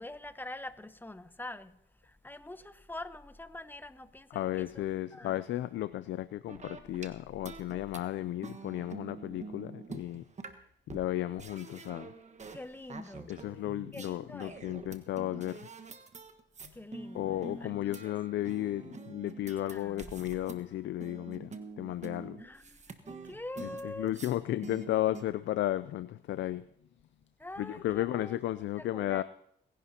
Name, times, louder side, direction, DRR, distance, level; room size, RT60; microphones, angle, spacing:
voice 1, 0.0-4.9 5.1-5.4 12.5-13.4 13.9-14.8 16.7-18.1 19.7-20.5 22.4-22.8 23.0-24.1 27.4-28.4 28.8-29.2, left 1 dB, 10° left, 0.9 m, -45 dB
voice 2, 4.3-10.2 10.9-12.1 13.3-15.7 16.6-16.7 17.1-22.4 23.6-26.6 27.6-29.2, left 14 dB, 80° left, 0.4 m, -34 dB
sound 1, 6.5-7.1 7.5-8.0 8.4-10.6 10.9-11.0 11.4-12.6 12.9-14.1 14.4-20.7 21.0-24.4 24.6-25.2, right 4 dB, 40° right, 1.3 m, -46 dB
30.0 x 11.0 x 2.8 m
cardioid pair, 75°, 19 cm